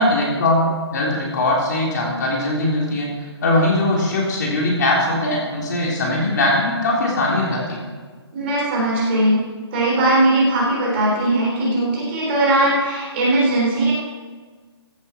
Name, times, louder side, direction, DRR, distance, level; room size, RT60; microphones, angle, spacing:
voice 1, 0.0-7.9, left 1 dB, 40° left, -3 dB, 3.6 m, -20 dB
voice 2, 8.3-9.4 9.7-13.9, right 1 dB, 25° right, -4 dB, 3.6 m, -19 dB
15.5 x 9.7 x 4.5 m, 1.5 s
hypercardioid pair, 165°, 14 cm